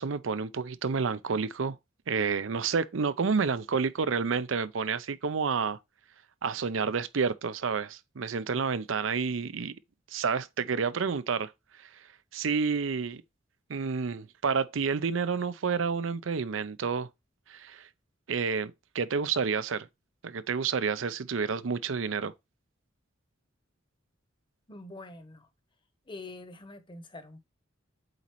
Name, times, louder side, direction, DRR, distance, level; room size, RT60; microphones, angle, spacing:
voice 1, 0.0-1.8 2.1-5.8 6.4-9.8 10.1-11.5 11.8-12.1 12.3-13.2 13.7-17.1 17.5-17.9 18.3-19.9 20.2-22.3, right 5 dB, 80° right, 0.6 m, -29 dB
voice 2, 24.7-25.5 26.1-27.5, left 2 dB, 25° left, 0.9 m, -45 dB
7.9 x 4.2 x 3.1 m
head